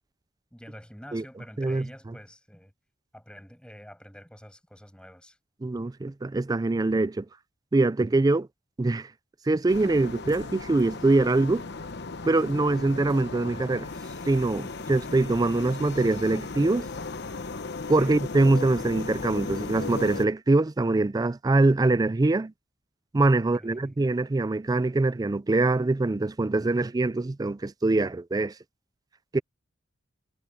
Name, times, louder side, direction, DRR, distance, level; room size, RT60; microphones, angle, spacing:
voice 1, 0.5-2.7 3.1-5.4 18.0-18.2 23.6-24.0, equal, 5° left, 7.3 m, -47 dB
voice 2, 5.6-7.3 7.7-8.5 8.8-9.1 9.5-11.7 12.3-13.9 14.3-16.9 17.9-22.5 23.1-28.5 29.3-29.4, right 2 dB, 20° right, 0.4 m, -23 dB
sound 1, 9.7-20.3, left 3 dB, 60° left, 1.0 m, -36 dB
head